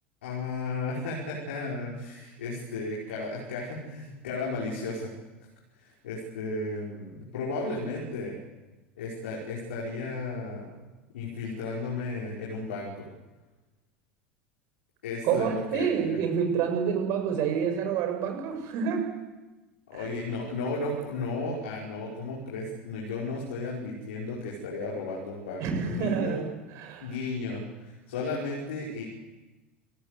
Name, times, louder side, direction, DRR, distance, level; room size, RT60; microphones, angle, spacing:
voice 1, 0.2-5.1 5.8-8.4 9.0-10.7 11.1-13.0 15.0-16.2 19.9-26.4 27.0-29.0, left 3 dB, 65° left, -3 dB, 5.3 m, -34 dB
voice 2, 15.2-19.0 20.0-20.1 25.6-27.1, right 7 dB, 50° right, 5 dB, 6.4 m, -28 dB
28.5 x 15.5 x 8.3 m, 1.1 s
figure-of-eight pair, 75°, 7 cm